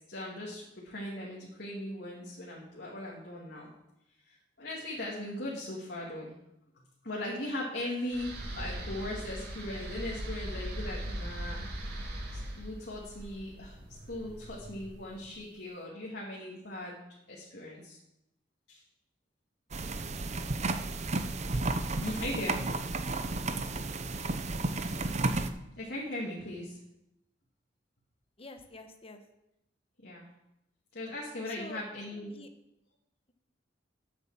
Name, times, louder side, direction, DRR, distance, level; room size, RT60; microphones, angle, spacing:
voice 1, 0.1-3.7 4.2-6.3 7.0-11.7 12.3-17.0 17.3-18.0 18.7-18.8 22.0-22.6 25.8-26.8 30.0-30.3 30.9-32.3, left 1 dB, 65° left, -4 dB, 2.3 m, -39 dB
sound 1, 8.1-15.3, right 1 dB, 65° right, 3.1 m, -40 dB
sound 2, 19.7-25.5, right 2 dB, 40° right, 0.7 m, -32 dB
voice 2, 28.4-29.2 31.5-31.8 32.3-32.5, left 2 dB, 35° left, 7 dB, 1.2 m, -47 dB
9.0 x 8.1 x 7.3 m, 0.86 s
head